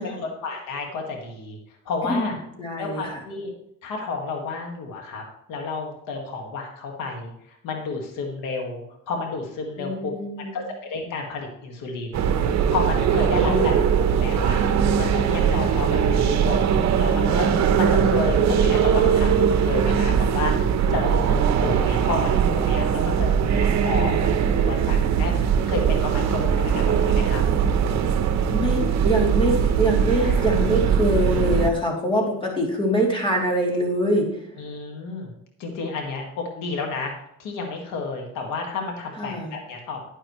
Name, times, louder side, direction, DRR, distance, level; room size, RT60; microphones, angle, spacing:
voice 1, 0.0-1.6 1.9-2.4 2.8-3.5 3.8-5.2 5.5-10.1 10.4-10.6 10.9-12.3 12.7-13.7 14.1-14.6 15.0-16.7 17.0-24.3 24.6-27.4 30.2-30.6 34.6-35.3 35.6-37.1 37.4-40.1, left 4 dB, 90° left, 2 dB, 2.0 m, -31 dB
voice 2, 2.6-3.2 9.8-10.6 13.3-13.8 28.5-34.3 39.2-39.5, equal, 15° left, -1 dB, 3.0 m, -24 dB
sound 1, 12.1-31.7, right 7 dB, 60° right, 1.0 m, -20 dB
10.0 x 10.0 x 3.2 m, 0.74 s
cardioid pair, 110°, 31 cm